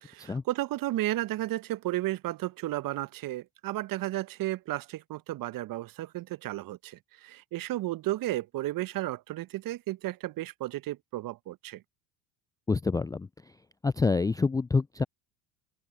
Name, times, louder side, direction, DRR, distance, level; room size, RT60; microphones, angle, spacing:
voice 1, 0.0-11.8, right 16 dB, 45° right, 1.5 m, -33 dB
voice 2, 12.7-13.3 13.8-15.0, left 4 dB, 10° left, 0.5 m, -27 dB
figure-of-eight pair, 65°, 48 cm